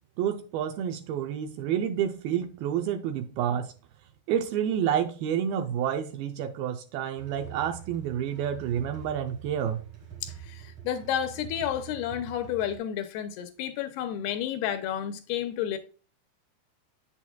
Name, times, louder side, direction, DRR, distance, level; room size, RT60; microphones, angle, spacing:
voice 1, 0.2-3.7 4.3-9.8, right 9 dB, 80° right, 2.4 m, -29 dB
sound 1, 7.2-12.8, right 10 dB, 55° right, 1.7 m, -45 dB
voice 2, 10.2-15.8, left 10 dB, 85° left, 2.6 m, -31 dB
8.7 x 7.2 x 2.3 m
omnidirectional pair, 4.8 m